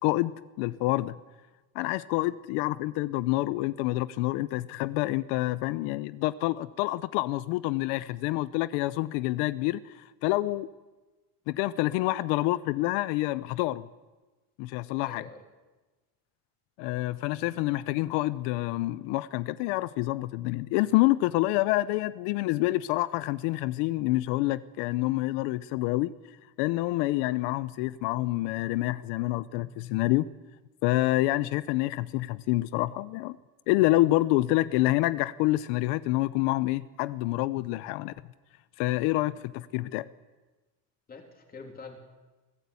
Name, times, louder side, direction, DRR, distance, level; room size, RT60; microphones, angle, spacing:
voice 1, 0.0-1.2 1.7-10.7 11.5-13.9 14.6-15.2 16.8-26.1 26.6-30.3 30.8-33.4 33.7-38.1 38.8-40.1, left 18 dB, 85° left, 16 dB, 0.8 m, -27 dB
voice 2, 15.0-15.4 39.0-39.1 41.1-42.0, left 4 dB, 20° left, 4 dB, 3.0 m, -46 dB
23.0 x 14.5 x 8.4 m, 1.2 s
cardioid pair, 170°, 41 cm